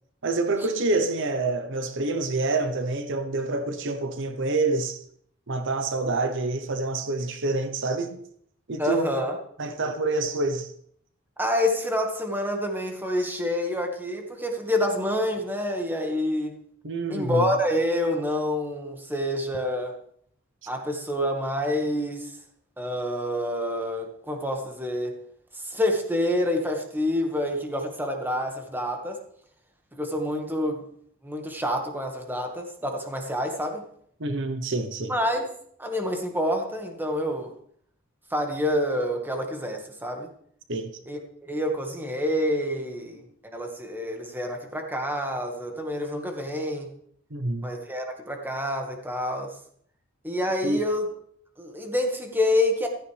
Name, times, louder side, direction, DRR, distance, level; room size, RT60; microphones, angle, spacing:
voice 1, 0.2-5.0 5.5-8.2 8.7-9.1 9.6-10.7 16.8-17.5 34.2-35.1 40.7-40.9 47.3-47.7 50.6-50.8, right 3 dB, 65° right, 1.0 m, -27 dB
voice 2, 8.8-9.4 11.4-16.6 17.1-20.0 20.7-22.3 22.8-25.1 25.6-29.2 29.9-30.8 31.2-33.8 35.1-35.5 35.8-37.5 38.3-40.3 41.1-46.9 47.6-49.5 50.2-51.1 51.6-52.9, left 1 dB, 10° right, 1.8 m, -27 dB
15.0 x 13.5 x 3.5 m
head